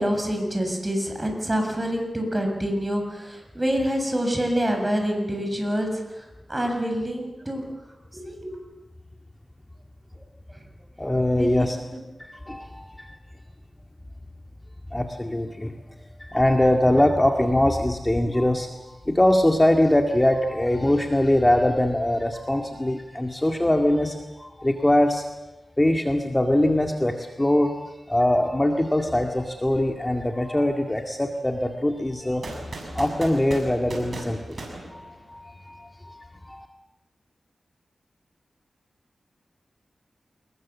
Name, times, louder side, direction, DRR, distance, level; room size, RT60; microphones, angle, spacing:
voice 1, 0.0-6.2 6.5-7.6 8.1-8.5 11.3-12.0, equal, 20° right, 3 dB, 7.5 m, -26 dB
voice 2, 11.0-11.8 12.2-13.2 14.9-15.7 16.2-25.3 25.8-27.7 28.1-32.5 32.9-34.6 34.9-35.0 35.3-36.2 36.4-36.7, left 1 dB, 15° left, 3 dB, 2.0 m, -22 dB
sound 1, 32.4-35.6, right 2 dB, 65° right, 7.3 m, -38 dB
27.5 x 21.5 x 7.4 m, 1.1 s
cardioid pair, 70°, 0 cm